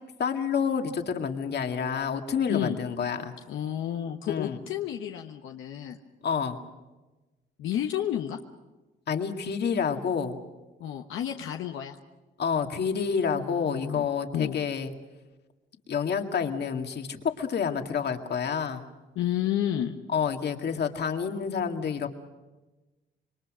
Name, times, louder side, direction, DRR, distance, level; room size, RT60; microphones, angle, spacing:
voice 1, 0.2-3.3 4.3-4.6 6.2-6.6 9.1-10.4 12.4-14.9 15.9-18.9 20.1-22.1, left 6 dB, 55° left, 5 dB, 2.2 m, -28 dB
voice 2, 2.5-2.8 3.5-6.0 7.6-8.4 10.8-12.0 13.3-14.0 14.3-14.6 19.1-20.0, left 11 dB, 85° left, 3 dB, 1.2 m, -31 dB
27.0 x 22.5 x 6.3 m, 1.1 s
cardioid pair, 90°, 20 cm